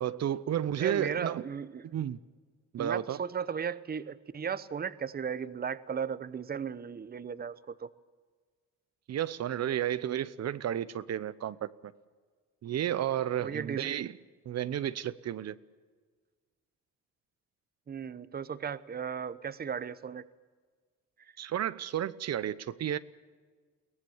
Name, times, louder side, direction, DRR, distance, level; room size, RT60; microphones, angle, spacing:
voice 1, 0.0-1.4 1.8-2.2 2.7-3.2 9.1-11.9 12.6-14.2 14.5-15.6 21.4-23.0, right 10 dB, 60° right, 0.8 m, -32 dB
voice 2, 0.8-1.8 2.8-7.9 13.4-13.9 17.9-20.3, right 7 dB, 30° right, 0.8 m, -36 dB
22.5 x 18.0 x 7.3 m
cardioid pair, 90°, 30 cm